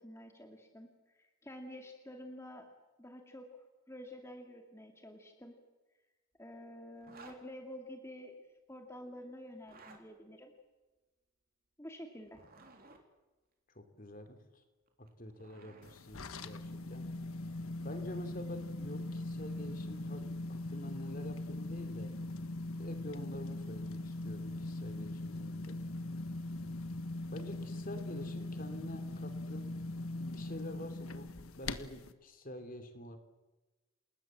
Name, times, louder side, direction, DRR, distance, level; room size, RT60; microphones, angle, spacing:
voice 1, 0.0-2.7 3.0-3.5 3.9-5.6 6.4-8.4 8.7-10.5 11.8-12.4, equal, 10° left, 3 dB, 2.3 m, -49 dB
Zipper (clothing), 7.0-7.4 9.5-10.0 12.1-13.0 14.9-16.0, right 3 dB, 45° right, 3.7 m, -56 dB
voice 2, 13.7-14.6 15.0-17.1 17.8-22.1 22.8-25.8 27.3-29.7 30.1-31.3 31.6-33.2, left 1 dB, 40° left, 7 dB, 3.0 m, -47 dB
sound 1, 15.8-32.1, left 2 dB, 75° left, 1.5 m, -41 dB
29.0 x 20.0 x 7.5 m, 1.2 s
head